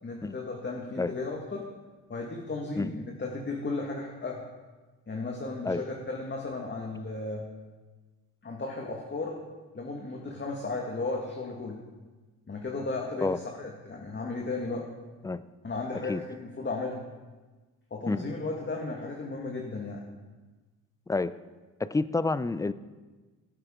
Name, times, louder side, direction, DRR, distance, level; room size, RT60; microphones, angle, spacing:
voice 1, 0.0-1.6 2.1-4.4 5.1-7.4 8.4-9.4 9.7-11.8 12.5-14.9 15.6-17.0 17.9-20.0, left 3 dB, 30° left, 0 dB, 1.8 m, -35 dB
voice 2, 21.8-22.7, left 3 dB, 10° left, 15 dB, 0.4 m, -28 dB
17.0 x 7.7 x 3.8 m, 1.3 s
supercardioid pair, 65°, 39 cm